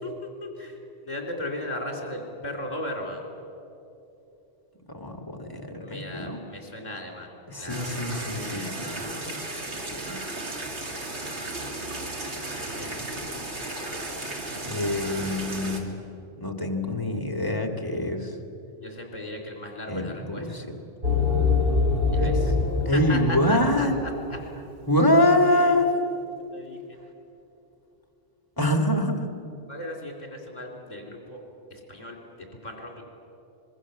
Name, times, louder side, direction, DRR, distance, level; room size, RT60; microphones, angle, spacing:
voice 1, 0.0-0.8 1.0-3.3 5.8-8.7 9.0-9.7 12.7-13.3 14.6-14.8 18.8-20.6 22.1-22.5 22.9-24.4 25.3-25.8 26.5-27.0 29.7-31.4 31.7-32.2 32.6-33.0, left 1 dB, 35° left, 1 dB, 4.0 m, -37 dB
voice 2, 4.9-6.4 7.5-9.2 9.9-10.2 14.6-16.0 16.4-18.3 19.9-20.7 22.2-22.3 22.9-24.0 24.9-25.9 28.6-29.2, left 1 dB, 20° left, 4 dB, 2.1 m, -25 dB
sound 1, 7.7-15.8, right 2 dB, 70° right, 2.6 m, -34 dB
sound 2, 21.0-24.4, left 4 dB, 50° right, 2.3 m, -24 dB
25.5 x 21.5 x 7.3 m, 2.8 s
omnidirectional pair, 1.2 m